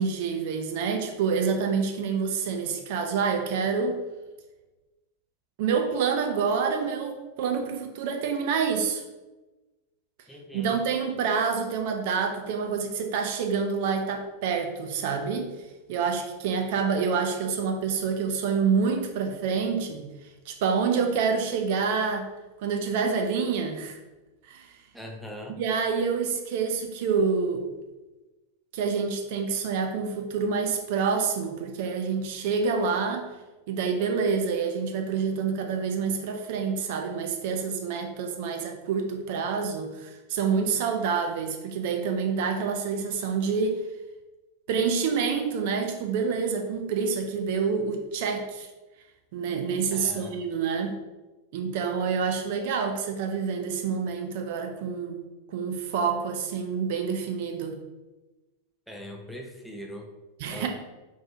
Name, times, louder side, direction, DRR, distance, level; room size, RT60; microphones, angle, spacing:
voice 1, 0.0-4.0 5.6-9.0 10.5-15.5 15.9-20.1 20.5-22.3 22.6-24.0 24.5-24.7 25.5-27.7 28.7-33.3 33.7-43.8 44.7-48.7 49.3-51.0 51.5-55.2 55.5-57.8 60.4-60.7, right 5 dB, 50° right, 4 dB, 0.5 m, -27 dB
voice 2, 10.3-10.8 24.9-25.6 49.9-50.4 58.9-60.1 60.5-60.7, equal, ahead, 0 dB, 0.5 m, -40 dB
4.4 x 3.0 x 2.7 m, 1.1 s
figure-of-eight pair, 90°, 0 cm